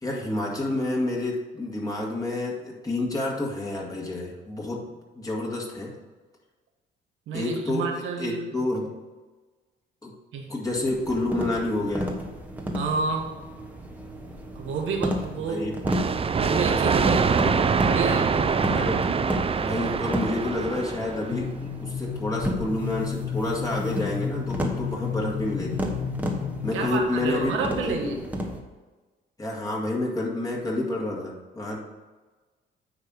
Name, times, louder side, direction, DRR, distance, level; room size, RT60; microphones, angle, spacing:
voice 1, 0.0-4.8 5.2-5.9 7.3-8.9 10.0-10.1 10.5-12.1 15.4-15.7 18.7-19.0 19.6-25.9 26.6-28.2 29.4-31.8, left 2 dB, 20° left, -3 dB, 2.1 m, -29 dB
voice 2, 7.3-8.7 10.3-10.5 12.7-13.3 14.5-15.7 16.4-18.5 26.7-28.2, right 4 dB, 85° right, 2 dB, 1.5 m, -29 dB
sound 1, 10.7-28.6, equal, 10° right, 1.3 m, -34 dB
sound 2, 15.8-21.4, right 5 dB, 30° right, 0.5 m, -24 dB
sound 3, 21.3-26.9, left 7 dB, 75° left, 1.6 m, -32 dB
9.7 x 3.3 x 6.5 m, 1.3 s
cardioid pair, 90°, 20 cm